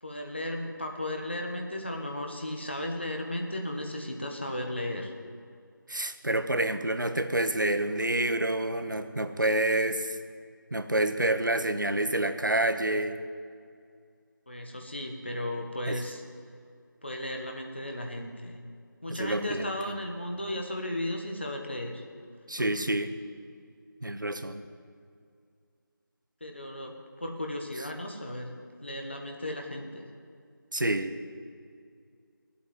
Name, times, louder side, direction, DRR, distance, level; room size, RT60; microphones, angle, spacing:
voice 1, 0.0-5.1 14.5-16.2 17.0-18.6 19.0-22.0 22.6-22.7 26.4-28.5 28.8-30.0, left 1 dB, 30° left, 3 dB, 1.4 m, -35 dB
voice 2, 5.9-10.2 10.7-13.2 15.9-16.0 19.1-19.7 22.5-23.2 24.0-24.6 30.7-31.2, right 1 dB, 65° right, 9 dB, 1.1 m, -28 dB
15.0 x 8.5 x 9.5 m, 2.2 s
figure-of-eight pair, 175°, 11 cm